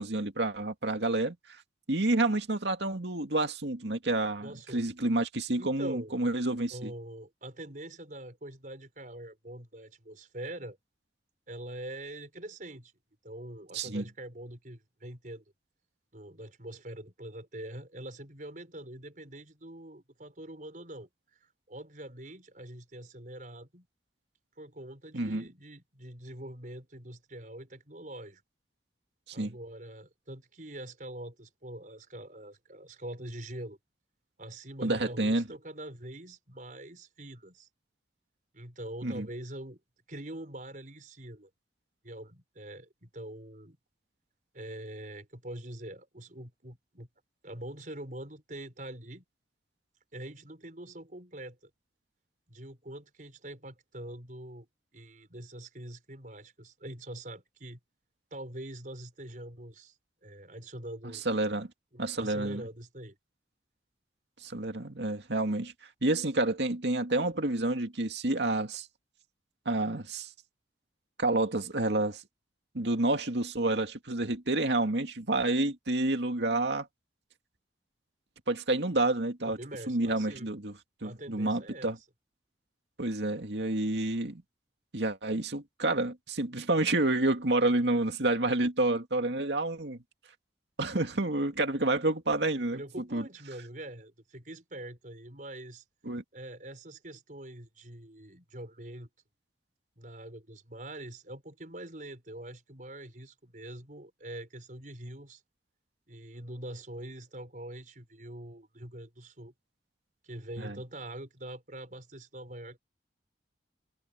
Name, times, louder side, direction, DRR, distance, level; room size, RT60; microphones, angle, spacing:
voice 1, 0.0-1.4 1.9-6.9 13.7-14.0 25.1-25.4 29.3-29.5 34.8-35.4 39.0-39.3 61.3-61.7 62.0-62.6 64.4-65.7 66.0-68.9 69.7-70.3 71.2-72.2 72.7-76.9 78.5-79.6 79.9-80.7 81.0-82.0 83.0-84.4 84.9-90.0 90.8-92.8 93.1-93.2 96.1-96.2 110.6-110.8, right 2 dB, 75° right, 2.3 m, -29 dB
voice 2, 4.4-4.8 5.6-6.1 6.7-10.8 11.5-12.9 13.2-15.4 16.1-21.1 21.4-23.9 24.6-28.4 29.3-33.8 34.4-37.7 38.5-39.8 40.1-41.5 42.0-43.8 44.5-47.1 47.4-49.2 50.1-51.6 52.5-54.7 54.9-57.8 58.3-60.0 60.2-61.2 61.9-63.2 79.5-80.5 81.0-82.0 92.6-95.8 96.3-99.1 100.0-105.4 106.1-109.5 110.2-112.8, right 1 dB, 45° right, 5.9 m, -44 dB
head